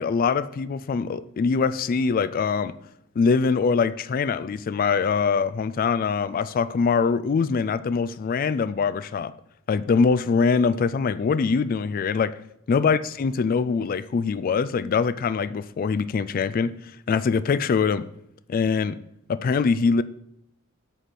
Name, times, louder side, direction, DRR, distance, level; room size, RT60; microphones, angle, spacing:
voice 1, 0.0-2.7 3.2-9.3 9.7-12.4 12.7-16.7 17.1-18.0 18.5-19.0 19.3-20.0, left 5 dB, 45° left, 0.3 m, -23 dB
8.0 x 4.2 x 6.1 m
head